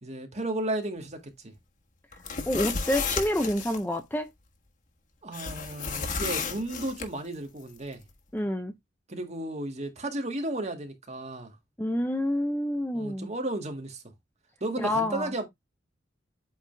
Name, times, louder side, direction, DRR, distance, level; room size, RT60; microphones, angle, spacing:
voice 1, 0.0-1.5 5.2-8.0 9.1-11.6 12.9-14.0 14.6-15.5, right 1 dB, 40° right, 1.9 m, -34 dB
sound 1, 2.1-3.8 5.3-7.1, left 5 dB, 45° left, 1.3 m, -32 dB
voice 2, 2.5-4.3 8.3-8.7 11.8-13.3 14.8-15.3, left 1 dB, 10° left, 0.7 m, -28 dB
8.2 x 3.6 x 3.3 m
head